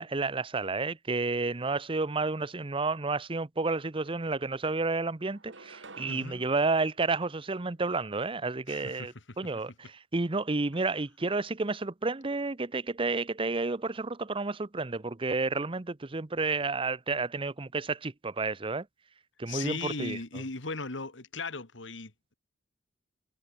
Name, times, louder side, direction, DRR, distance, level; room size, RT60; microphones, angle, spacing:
voice 1, 0.0-18.9 19.4-20.2, right 3 dB, 30° right, 0.8 m, -31 dB
sound 1, 3.6-3.7 4.1-4.8 5.3-7.9, right 3 dB, 75° right, 4.0 m, -53 dB
voice 2, 6.1-6.4 8.7-9.4 19.5-22.3, left 3 dB, 75° left, 2.2 m, -38 dB
head